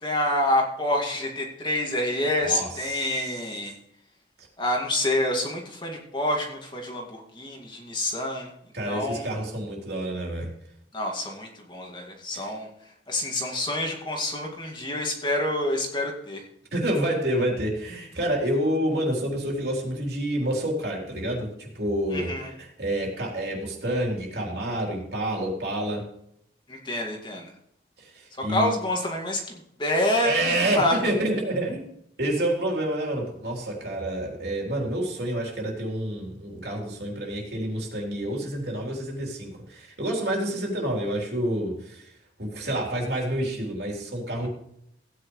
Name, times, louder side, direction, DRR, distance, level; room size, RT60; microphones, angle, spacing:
voice 1, 0.0-3.7 4.6-8.5 8.9-9.3 10.9-12.7 13.1-16.4 22.1-22.5 26.7-27.5 28.4-31.0, left 1 dB, 25° left, 0 dB, 2.2 m, -27 dB
voice 2, 2.4-3.4 8.7-10.5 12.3-12.5 16.7-26.1 28.0-28.7 30.2-31.9 32.2-42.0 42.4-44.5, right 1 dB, 60° right, -1 dB, 3.7 m, -28 dB
16.0 x 9.7 x 3.2 m, 0.73 s
head